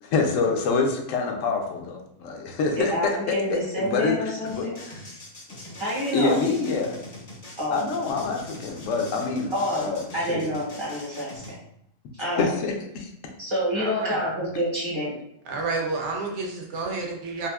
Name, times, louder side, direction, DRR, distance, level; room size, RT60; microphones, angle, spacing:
voice 1, 0.0-3.1 3.5-5.0 6.1-7.0 7.7-10.0 10.3-10.5 12.2-13.0, left 4 dB, 70° left, 2 dB, 0.9 m, -26 dB
voice 2, 2.7-4.8 5.8-6.4 7.6-7.8 9.5-11.6 12.2-12.5 13.4-15.2, equal, 25° right, -6 dB, 0.7 m, -28 dB
sound 1, 4.5-11.5, left 1 dB, 45° left, 0.5 m, -42 dB
voice 3, 13.7-14.3 15.5-17.5, right 3 dB, 60° right, 0 dB, 0.8 m, -30 dB
3.5 x 2.5 x 2.3 m, 0.75 s
omnidirectional pair, 1.6 m